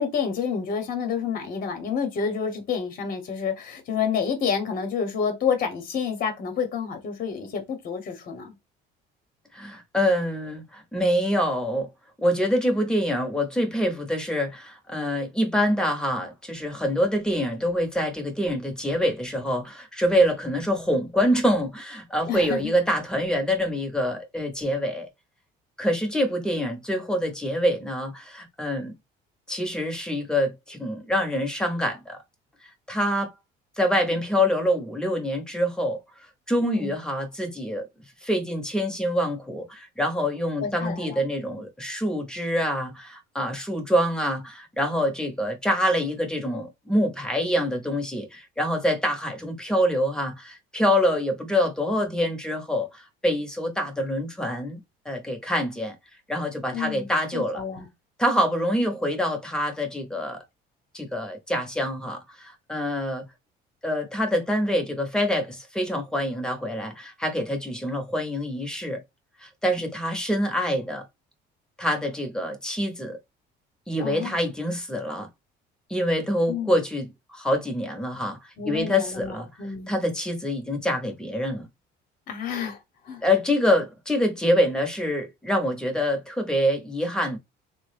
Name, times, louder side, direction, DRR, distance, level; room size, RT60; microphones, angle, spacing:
voice 1, 0.0-8.5 22.3-22.7 36.6-37.0 40.6-41.2 56.7-57.9 74.0-74.3 76.5-76.7 78.6-79.9 82.3-82.8 83.0-83.2, left 6 dB, 45° left, 0.9 m, -29 dB
voice 2, 9.5-11.9 12.2-25.1 25.8-28.9 29.5-32.2 32.9-33.3 33.8-36.0 36.5-37.8 38.2-54.8 55.0-55.9 56.3-57.6 58.2-60.4 60.9-63.2 63.8-69.0 69.4-71.0 71.8-73.2 73.9-75.3 75.9-79.5 79.9-81.7 83.2-87.4, equal, 5° left, 0.8 m, -25 dB
3.4 x 2.1 x 3.2 m
cardioid pair, 120°, 20 cm